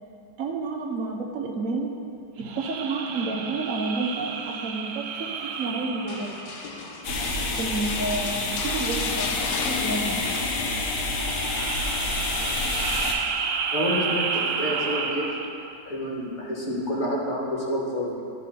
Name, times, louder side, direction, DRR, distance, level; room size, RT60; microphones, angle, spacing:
voice 1, 0.4-1.9 2.4-6.4 7.6-10.2, right 3 dB, 55° right, 1 dB, 1.1 m, -30 dB
sound 1, 2.4-7.2 11.0-15.7, right 5 dB, 90° right, 1.3 m, -31 dB
sound 2, 6.1-11.1 11.3-11.7 12.2-13.2 14.3-14.8 15.3-15.4, left 6 dB, 75° left, 1.1 m, -38 dB
sound 3, 7.0-13.1, left 2 dB, 55° left, 1.2 m, -28 dB
voice 2, 13.7-15.3 15.8-18.2, equal, 25° left, -4 dB, 1.4 m, -28 dB
11.5 x 4.2 x 5.6 m, 2.5 s
omnidirectional pair, 1.9 m